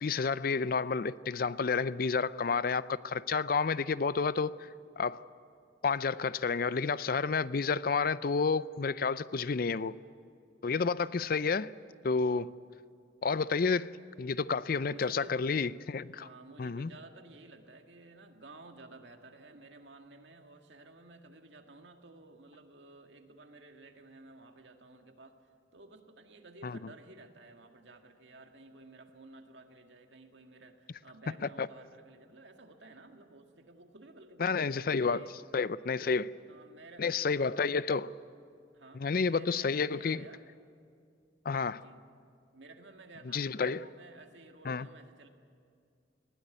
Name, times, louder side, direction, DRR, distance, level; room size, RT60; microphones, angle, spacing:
voice 1, 0.0-4.7 5.0-5.2 5.8-10.0 10.6-11.7 12.0-12.5 13.2-16.3 16.6-16.9 26.6-26.8 31.4-31.7 34.4-35.3 35.5-36.3 37.0-38.1 38.9-40.2 41.5-41.8 43.3-43.8 44.7-44.9, left 5 dB, 55° left, 0.5 m, -30 dB
voice 2, 14.9-15.4 16.2-25.4 25.7-34.7 35.0-35.3 35.9-37.8 38.7-40.4 41.8-42.0 42.5-45.3, right 2 dB, 80° right, 2.0 m, -54 dB
20.5 x 17.5 x 9.6 m
head